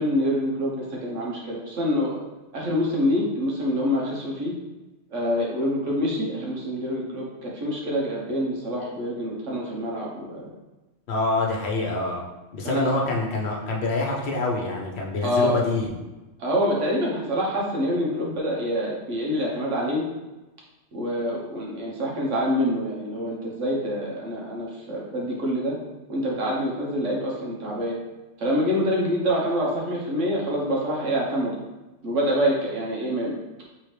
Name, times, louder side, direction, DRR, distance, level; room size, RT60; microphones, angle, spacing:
voice 1, 0.0-2.2 2.5-4.5 5.1-10.4 12.6-12.9 15.2-15.5 16.4-20.0 20.9-25.7 26.1-28.0 28.4-31.6 32.0-33.3, equal, 80° right, -3 dB, 1.4 m, -26 dB
voice 2, 11.1-12.2 12.5-16.0, left 2 dB, 65° left, 0 dB, 1.0 m, -26 dB
4.7 x 3.4 x 3.3 m, 1.1 s
omnidirectional pair, 1.2 m